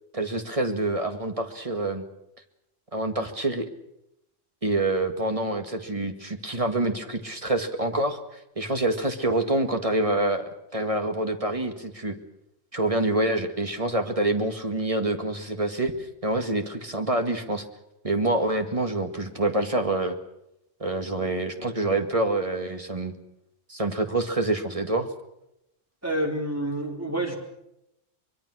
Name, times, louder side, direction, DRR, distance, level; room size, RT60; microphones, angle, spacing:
voice 1, 0.1-2.0 2.9-3.7 4.6-10.4 10.7-12.2 12.7-17.6 18.0-20.2 20.8-23.1 23.7-25.1, right 2 dB, 25° right, 6 dB, 1.9 m, -26 dB
voice 2, 26.0-27.4, right 1 dB, 10° right, 0 dB, 4.2 m, -28 dB
24.0 x 22.5 x 6.3 m, 0.84 s
omnidirectional pair, 1.3 m